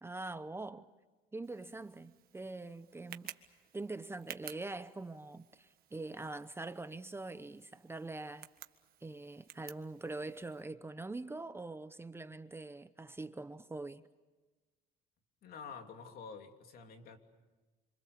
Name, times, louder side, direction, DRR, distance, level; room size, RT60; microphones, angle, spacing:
voice 1, 0.0-0.9 1.3-3.3 3.7-8.5 9.0-14.0, right 2 dB, 15° right, 0.8 m, -44 dB
Tick, 1.4-10.6, right 11 dB, 65° right, 1.6 m, -55 dB
voice 2, 15.4-17.2, left 5 dB, 60° left, 3.2 m, -48 dB
27.0 x 26.0 x 6.9 m
cardioid pair, 110°, 17 cm